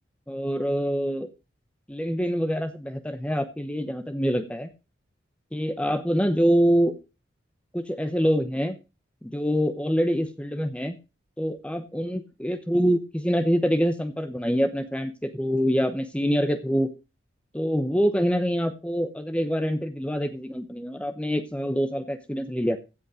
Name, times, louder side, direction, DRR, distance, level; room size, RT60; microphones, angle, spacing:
voice 1, 0.3-1.3 1.9-4.7 5.5-6.9 7.7-8.8 9.2-11.0 11.4-16.9 17.5-22.8, equal, 5° left, 9 dB, 0.9 m, -25 dB
15.5 x 5.4 x 4.9 m, 0.28 s
head